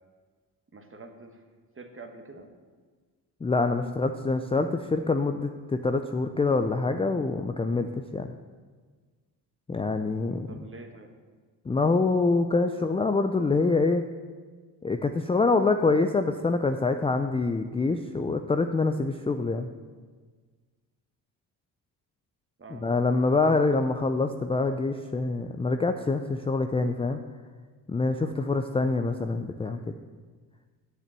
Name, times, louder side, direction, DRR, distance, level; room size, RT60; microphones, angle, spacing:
voice 1, 0.7-1.4 1.7-2.5 10.5-11.2 22.6-23.3, right 3 dB, 25° right, 5 dB, 1.3 m, -46 dB
voice 2, 3.4-8.3 9.7-10.6 11.7-14.0 14.8-19.7 22.7-27.2 27.9-30.0, left 3 dB, 15° left, 7 dB, 0.4 m, -25 dB
7.4 x 6.7 x 7.5 m, 1.5 s
cardioid pair, 80°, 46 cm